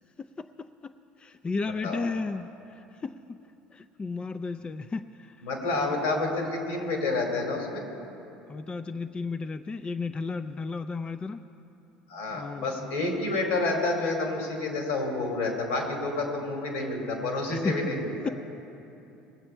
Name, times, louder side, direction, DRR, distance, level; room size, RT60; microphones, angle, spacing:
voice 1, 0.4-0.9 1.2-3.4 3.7-5.4 5.7-6.0 8.5-11.4 12.3-13.0 17.5-17.7, left 4 dB, 25° left, 10 dB, 0.4 m, -34 dB
voice 2, 5.4-7.8 12.1-18.3, left 2 dB, 75° left, 1 dB, 2.8 m, -29 dB
20.0 x 7.7 x 4.4 m, 2.9 s
hypercardioid pair, 70°, 5 cm